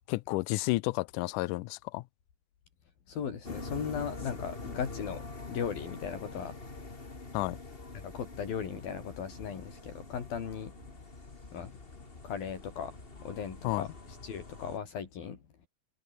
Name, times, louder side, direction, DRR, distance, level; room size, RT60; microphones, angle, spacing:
voice 1, 0.1-2.0 7.3-7.6 13.6-13.9, left 21 dB, 90° left, 1.8 m, -31 dB
voice 2, 3.1-6.6 8.0-10.7 11.5-11.8 12.2-15.4, left 7 dB, 70° left, 5.1 m, -37 dB
sound 1, 3.4-14.8, left 3 dB, 20° left, 1.9 m, -45 dB
omnidirectional pair, 4.3 m